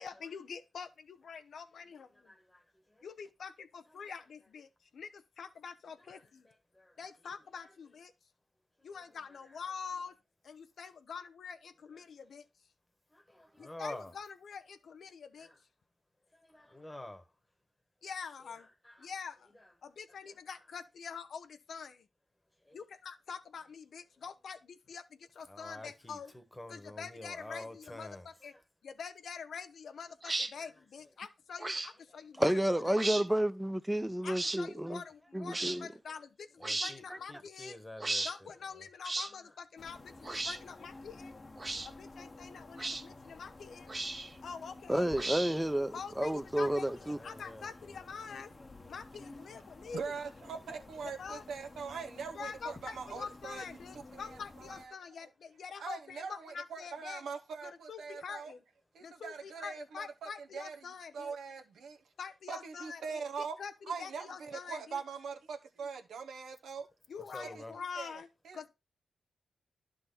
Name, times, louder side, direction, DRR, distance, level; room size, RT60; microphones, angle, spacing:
voice 1, 0.0-2.3 3.0-6.5 7.0-8.1 8.8-10.2 10.4-12.4 13.6-15.5 18.0-18.7 19.0-19.5 19.8-22.1 22.7-26.3 26.7-28.5 28.8-32.5 32.9-33.0 34.2-37.8 38.2-41.3 41.8-43.9 44.4-45.1 45.9-48.5 48.9-50.1 51.0-51.4 52.3-57.2 57.6-58.6 59.0-61.4 62.2-65.0 67.1-68.7, left 6 dB, 75° left, 0.7 m, -46 dB
voice 2, 2.3-2.6 6.0-6.9 9.4-9.5 13.1-14.1 15.4-15.5 16.5-17.2 18.8-19.1 19.6-19.7 22.7-22.8 25.5-28.3 30.6-30.7 35.6-35.8 36.6-38.5 42.4-42.5 47.0-47.9 67.3-67.7, left 1 dB, 20° left, 1.3 m, -48 dB
sound 1, 30.2-30.5 31.6-31.9 32.9-33.2 34.3-34.6 35.5-35.8 36.6-36.9 38.0-38.3 39.0-39.3 40.2-40.6 41.6-41.9 42.8-43.0 43.9-44.3 45.1-45.7, right 2 dB, 35° right, 0.9 m, -35 dB
voice 3, 32.4-35.0 35.3-35.9 44.9-47.2, right 1 dB, 10° right, 0.7 m, -30 dB
sound 2, 39.8-54.9, left 2 dB, 40° left, 1.0 m, -52 dB
voice 4, 49.9-53.6 54.1-54.9 55.8-58.5 58.9-60.8 61.1-62.0 62.5-63.6 63.9-66.9 67.4-67.6 68.0-68.7, right 5 dB, 80° right, 0.9 m, -42 dB
11.0 x 3.9 x 4.0 m
supercardioid pair, 45°, 0 cm